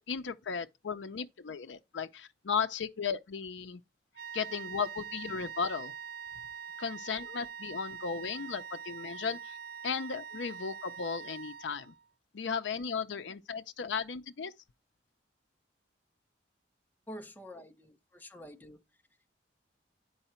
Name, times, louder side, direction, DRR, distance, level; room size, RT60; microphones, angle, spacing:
voice 1, 0.1-3.8 4.3-5.9 6.8-9.6 9.8-11.9 12.3-14.5, left 6 dB, 85° left, 0.5 m, -35 dB
sound 1, 4.2-12.0, right 7 dB, 60° right, 0.4 m, -44 dB
voice 2, 17.1-18.8, equal, 10° left, 0.7 m, -47 dB
9.0 x 4.8 x 4.3 m
head